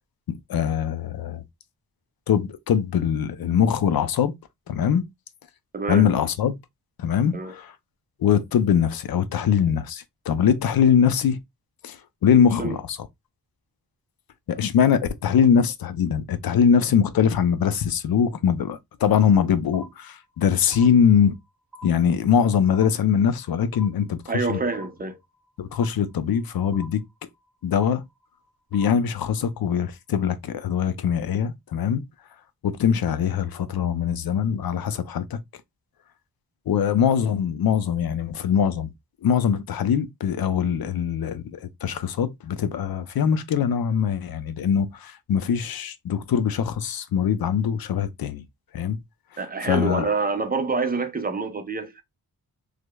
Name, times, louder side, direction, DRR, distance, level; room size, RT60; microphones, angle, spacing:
voice 1, 0.3-1.4 2.3-4.3 4.7-5.0 5.9-6.6 7.0-7.7 8.2-11.4 11.8-12.0 12.2-13.0 14.5-21.4 21.8-24.2 24.5-24.6 25.6-27.0 27.6-28.0 28.7-32.0 32.6-35.4 36.7-38.9 39.2-48.4 48.7-49.0 49.6-50.1, left 7 dB, 65° left, 0.5 m, -22 dB
voice 2, 5.7-6.1 7.3-7.6 12.6-12.8 24.3-25.2 49.4-52.0, right 3 dB, 25° right, 0.5 m, -27 dB
sound 1, 19.7-20.4 20.7-21.5 21.7-22.5 22.7-23.5 23.7-24.5 24.7-25.5 25.7-26.5 26.7-27.5 27.7-28.5 28.7-29.5, equal, 5° right, 1.1 m, -46 dB
4.8 x 2.1 x 2.2 m
wide cardioid pair, 135°, 38 cm